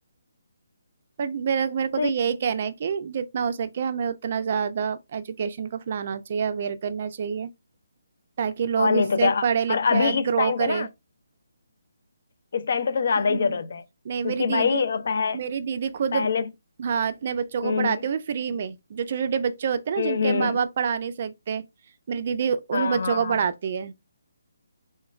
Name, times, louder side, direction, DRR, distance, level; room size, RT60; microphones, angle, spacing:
voice 1, 1.2-7.5 8.4-10.9 13.2-13.6 14.1-14.8 15.3-16.3 16.8-21.6 22.1-23.9, right 7 dB, 45° right, 0.3 m, -27 dB
voice 2, 8.8-10.9 12.5-13.8 14.2-15.4 16.1-16.5 17.6-18.0 20.0-20.6 22.7-23.4, left 5 dB, 60° left, 0.4 m, -24 dB
3.1 x 2.1 x 2.4 m
figure-of-eight pair, 155°, 0 cm